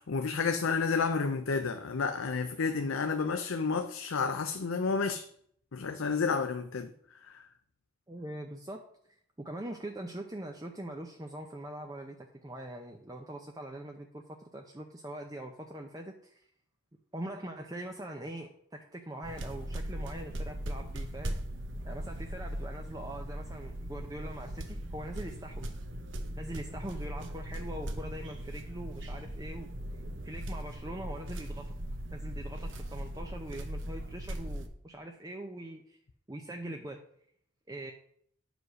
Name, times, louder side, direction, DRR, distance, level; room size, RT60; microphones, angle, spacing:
voice 1, 0.0-5.3 5.7-6.9 7.3-7.4, left 5 dB, 90° left, 0.6 m, -30 dB
voice 2, 8.1-8.8 9.4-16.4 17.1-21.4 21.8-25.8 26.4-29.7 30.2-31.6 32.1-36.0 36.3-37.0 37.7-37.9, right 1 dB, 20° right, 0.6 m, -42 dB
sound 1, 19.2-34.7, right 1 dB, 70° right, 1.0 m, -39 dB
9.5 x 5.1 x 6.2 m
head